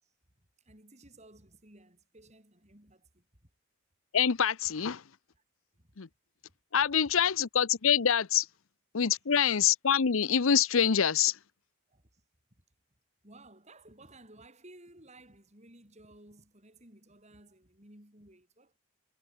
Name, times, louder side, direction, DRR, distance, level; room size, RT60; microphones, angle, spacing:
voice 1, 0.0-3.5 5.3-5.4 5.8-5.9 6.5-7.2 11.9-12.2 12.5-12.6 13.2-18.8, right 1 dB, 30° right, 6.5 m, -57 dB
voice 2, 4.1-5.0 6.0-6.1 6.7-8.5 8.9-11.3, left 8 dB, 70° left, 0.7 m, -25 dB
head